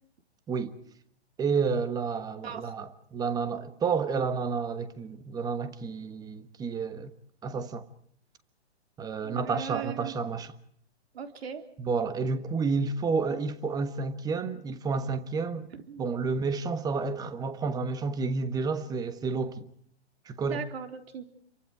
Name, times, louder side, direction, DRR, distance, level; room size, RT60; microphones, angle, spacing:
voice 1, 1.4-7.1 7.4-7.9 9.0-10.5 11.8-15.7 16.0-19.7 20.2-20.6, right 5 dB, 10° right, 1.3 m, -30 dB
voice 2, 2.4-2.7 9.2-10.1 11.1-11.6 15.9-16.1 20.4-21.2, right 7 dB, 65° right, 3.8 m, -38 dB
29.5 x 23.5 x 4.8 m
hypercardioid pair, 145°, 33 cm